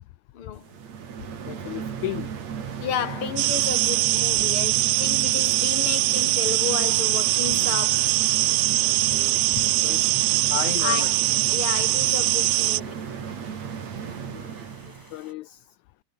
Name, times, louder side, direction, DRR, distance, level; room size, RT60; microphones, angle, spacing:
voice 1, 0.3-0.7 2.8-8.1 10.8-11.2 11.5-13.1, left 9 dB, 45° left, 2.5 m, -32 dB
sound 1, 0.6-15.2, right 7 dB, 55° right, 3.7 m, -35 dB
voice 2, 1.5-2.3 8.8-10.1 10.5-11.1 14.2-14.5 15.1-15.7, left 17 dB, 75° left, 2.0 m, -35 dB
sound 2, 3.4-12.8, right 19 dB, 80° right, 1.7 m, -22 dB
sound 3, 6.9-15.3, left 1 dB, 5° left, 5.1 m, -53 dB
omnidirectional pair, 3.7 m